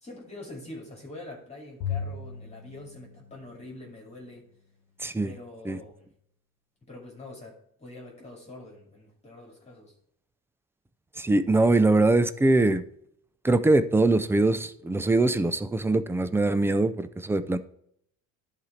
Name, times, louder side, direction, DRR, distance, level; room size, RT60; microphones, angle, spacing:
voice 1, 0.0-4.4 5.2-6.1 6.9-9.9, left 2 dB, 20° left, 2.2 m, -44 dB
Bowed string instrument, 1.8-4.2, left 7 dB, 90° left, 0.8 m, -37 dB
voice 2, 5.0-5.3 5.7-5.8 11.2-12.8 13.4-17.6, right 2 dB, 5° right, 0.5 m, -22 dB
10.5 x 4.3 x 4.3 m
cardioid pair, 110°, 35 cm